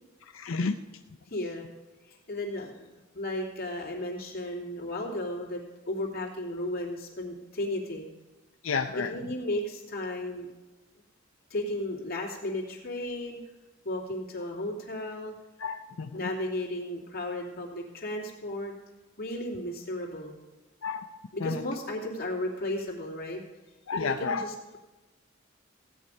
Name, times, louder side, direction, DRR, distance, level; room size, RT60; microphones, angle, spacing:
voice 1, 0.3-0.7 8.6-9.1 15.6-16.2 20.8-21.0 21.4-21.6 23.9-24.5, left 5 dB, 90° left, 6 dB, 0.6 m, -31 dB
voice 2, 1.3-1.7 2.0-2.7 3.1-8.1 9.0-10.5 11.5-13.4 13.8-15.3 16.1-18.7 19.2-20.4 21.3-23.4 23.9-24.8, left 1 dB, 50° left, -1 dB, 2.9 m, -34 dB
16.0 x 9.2 x 5.4 m, 1.2 s
head